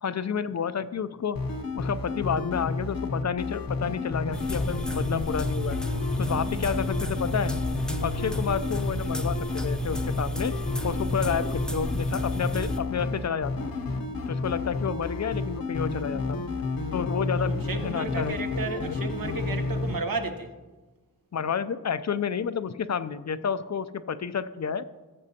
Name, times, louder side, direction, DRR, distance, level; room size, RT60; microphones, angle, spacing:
voice 1, 0.0-1.4 1.8-5.8 6.2-7.6 8.0-10.5 10.8-13.7 14.3-16.4 16.9-18.4 21.3-24.8, left 7 dB, 50° left, 13 dB, 0.4 m, -30 dB
sound 1, 1.3-20.0, left 3 dB, 75° left, 0.9 m, -31 dB
sound 2, 4.3-12.8, equal, ahead, 0.6 m, -32 dB
voice 2, 17.4-20.5, right 3 dB, 75° right, 6 dB, 1.0 m, -33 dB
14.0 x 7.2 x 2.8 m, 1.2 s
wide cardioid pair, 65°, 35 cm